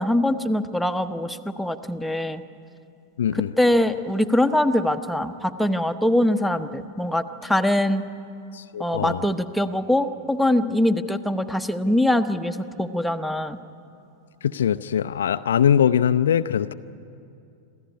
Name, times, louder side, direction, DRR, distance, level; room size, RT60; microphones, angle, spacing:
voice 1, 0.0-2.4 3.3-8.0 8.8-13.6, left 1 dB, ahead, 6 dB, 1.0 m, -23 dB
voice 2, 3.2-3.5 8.5-9.2 14.4-16.7, left 9 dB, 65° left, 13 dB, 0.5 m, -22 dB
26.0 x 15.0 x 9.7 m, 2.6 s
figure-of-eight pair, 90°, 0 cm